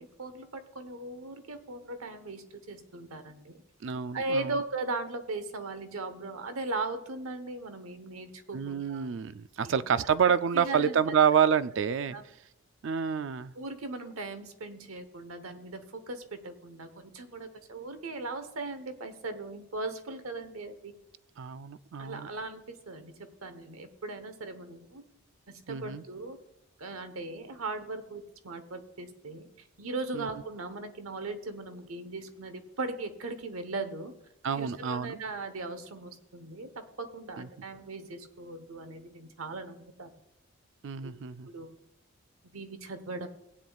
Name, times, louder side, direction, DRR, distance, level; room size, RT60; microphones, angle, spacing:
voice 1, 0.0-3.6 4.1-9.1 9.6-9.8 10.2-11.0 12.1-12.2 13.5-20.9 22.0-25.0 25.5-26.4 26.8-29.5 29.8-34.1 34.5-40.1 41.0-41.1 41.5-41.8 42.4-43.3, right 3 dB, 75° right, 9 dB, 1.0 m, -38 dB
voice 2, 3.8-4.5 8.5-12.2 12.8-13.5 21.4-22.3 25.7-26.0 30.1-30.3 34.4-35.2 37.4-37.5 40.8-41.5, right 7 dB, 55° right, 15 dB, 0.4 m, -28 dB
17.0 x 9.2 x 2.4 m, 0.85 s
head